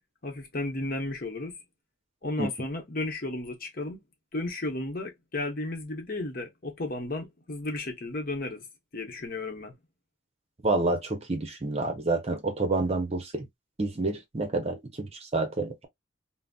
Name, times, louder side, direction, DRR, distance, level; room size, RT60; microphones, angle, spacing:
voice 1, 0.2-1.6 2.2-4.0 4.3-8.7 8.9-9.7, left 2 dB, 50° left, 0.9 m, -33 dB
voice 2, 10.6-13.5 13.8-15.9, right 2 dB, 35° right, 0.7 m, -28 dB
3.9 x 2.0 x 2.3 m
head